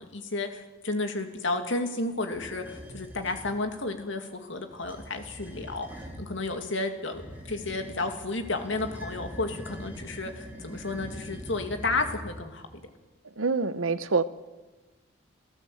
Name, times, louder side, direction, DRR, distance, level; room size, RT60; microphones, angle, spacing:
voice 1, 0.0-5.9 6.2-12.7, left 2 dB, 70° left, 5 dB, 2.5 m, -32 dB
sound 1, 2.3-3.5 4.7-6.3 7.1-12.6, equal, 10° right, 3.5 m, -43 dB
voice 2, 13.4-14.2, right 4 dB, 90° right, 14 dB, 1.0 m, -26 dB
27.0 x 14.5 x 7.9 m, 1.2 s
head